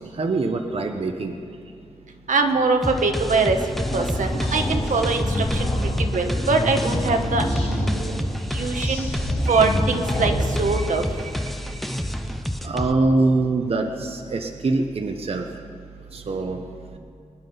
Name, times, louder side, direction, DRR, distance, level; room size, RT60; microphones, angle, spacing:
voice 1, 0.0-1.3 8.1-8.4 9.5-9.8 10.7-11.3 11.6-12.0 12.6-15.5 16.1-16.6, right 3 dB, 50° right, 4 dB, 0.8 m, -25 dB
voice 2, 2.3-3.6 3.9-5.7 6.0-8.1 8.5-9.1 9.5-10.3 10.6-11.0, right 4 dB, 80° right, 5 dB, 1.3 m, -23 dB
sound 1, 2.8-12.9, equal, ahead, 0.7 m, -29 dB
sound 2, 3.3-11.4, left 1 dB, 55° left, 3.1 m, -27 dB
24.0 x 9.7 x 5.5 m, 2.4 s
wide cardioid pair, 110°, 13 cm